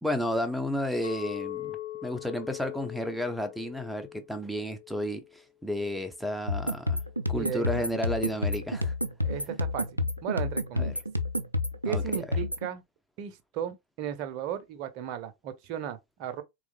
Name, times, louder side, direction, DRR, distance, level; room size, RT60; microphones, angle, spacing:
voice 1, 0.0-7.0 7.3-8.9 10.8-10.9 11.8-12.2, left 1 dB, ahead, 0.6 m, -32 dB
Chink clink, 1.0-5.4 5.8-6.2, left 14 dB, 75° left, 0.4 m, -41 dB
sound 1, 6.5-12.7, left 2 dB, 90° right, 0.4 m, -30 dB
voice 2, 7.3-7.9 9.2-10.9 11.8-12.8 13.2-16.4, right 10 dB, 45° right, 0.6 m, -36 dB
3.6 x 3.1 x 2.3 m
figure-of-eight pair, 90°, 0 cm